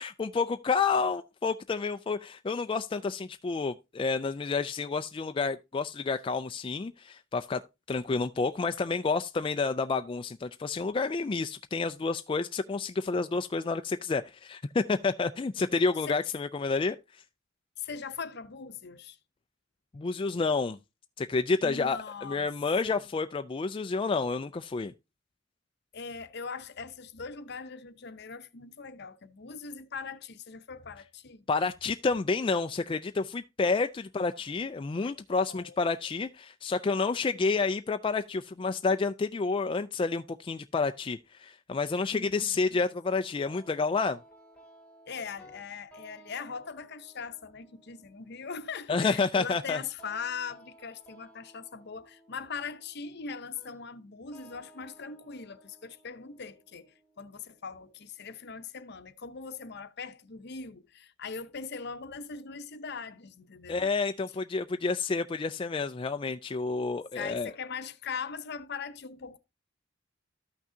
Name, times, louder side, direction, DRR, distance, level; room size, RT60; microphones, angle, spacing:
voice 1, 0.0-7.6 7.9-17.2 19.9-20.8 21.2-24.9 31.5-44.2 48.9-49.8 63.7-67.5, left 4 dB, 25° left, 0.3 m, -29 dB
voice 2, 17.8-19.2 21.6-22.5 22.8-23.1 25.9-31.5 35.0-35.8 42.1-42.8 45.1-63.9 67.1-69.4, left 5 dB, 60° left, 0.8 m, -41 dB
sound 1, 43.5-58.4, right 1 dB, 5° left, 3.3 m, -58 dB
13.5 x 6.0 x 2.7 m
head